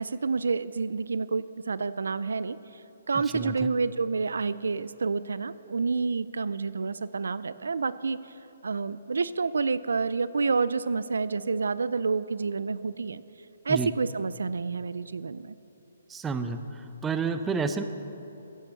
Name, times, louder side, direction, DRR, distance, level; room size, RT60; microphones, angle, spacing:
voice 1, 0.0-8.4 8.6-13.2 13.6-15.5, right 4 dB, 85° right, 16 dB, 0.4 m, -29 dB
voice 2, 16.1-16.6 17.0-17.8, right 5 dB, 10° right, 9 dB, 0.6 m, -29 dB
16.0 x 8.3 x 7.0 m, 3.0 s
hypercardioid pair, 150°, 0 cm